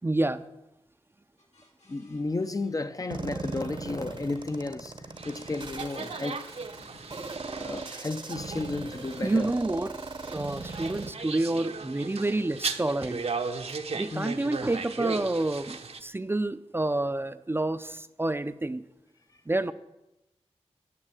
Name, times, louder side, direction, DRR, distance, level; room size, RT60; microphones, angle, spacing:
voice 1, 0.0-0.4 9.2-9.9 10.2-13.2 13.9-18.8 19.5-19.7, right 2 dB, 20° right, 0.5 m, -28 dB
sound 1, 1.4-12.2, left 2 dB, 80° left, 2.9 m, -58 dB
voice 2, 1.9-6.5 7.5-9.5 14.1-14.4, left 3 dB, 30° left, 0.6 m, -33 dB
sound 2, 3.1-11.1, right 3 dB, 45° right, 0.9 m, -39 dB
sound 3, 5.2-16.0, right 4 dB, 70° right, 0.9 m, -37 dB
10.5 x 9.8 x 7.6 m
wide cardioid pair, 85°, 11 cm